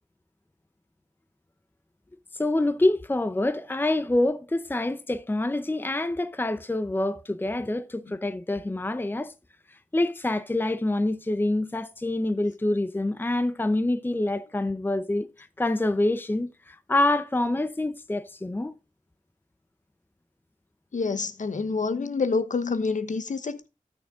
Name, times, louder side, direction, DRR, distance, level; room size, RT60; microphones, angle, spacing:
voice 1, 2.3-9.3 9.7-18.7, left 2 dB, 15° left, 0.6 m, -26 dB
voice 2, 20.9-23.7, left 4 dB, 65° left, 0.9 m, -27 dB
13.0 x 6.3 x 3.6 m
wide cardioid pair, 75°, 14 cm